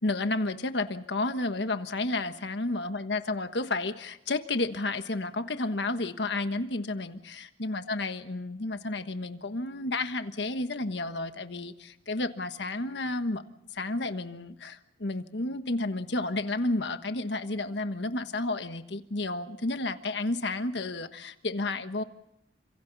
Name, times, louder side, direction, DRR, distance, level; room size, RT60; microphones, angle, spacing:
voice 1, 0.0-13.4 13.7-22.0, left 2 dB, 70° left, 9 dB, 1.4 m, -31 dB
30.0 x 26.5 x 4.1 m, 0.82 s
head